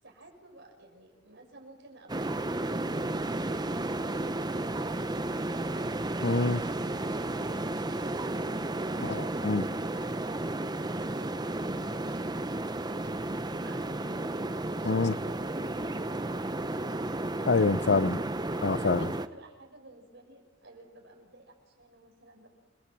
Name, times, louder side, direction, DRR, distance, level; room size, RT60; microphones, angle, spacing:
voice 1, 0.0-5.8 6.7-8.3 14.5-17.1 18.8-22.5, right 2 dB, 60° right, 6.6 m, -54 dB
sound 1, 2.1-19.3, right 2 dB, 20° right, 0.9 m, -33 dB
voice 2, 6.2-6.6 9.0-9.7 14.8-15.1 17.5-18.2 18.6-19.1, left 3 dB, 60° left, 0.8 m, -26 dB
29.5 x 21.0 x 7.6 m
head